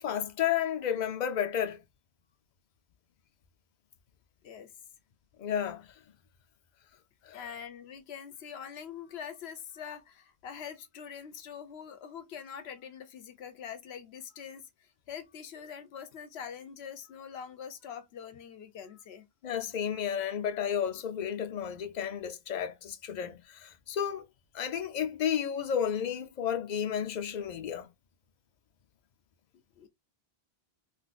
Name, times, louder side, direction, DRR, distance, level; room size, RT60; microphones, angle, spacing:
voice 1, 0.0-1.8 5.4-5.9 7.2-7.4 19.4-24.2 24.5-27.9, left 8 dB, 50° left, 0.6 m, -32 dB
voice 2, 7.3-19.3 29.8-29.9, left 8 dB, 85° left, 0.9 m, -44 dB
3.8 x 2.6 x 2.4 m
omnidirectional pair, 1.1 m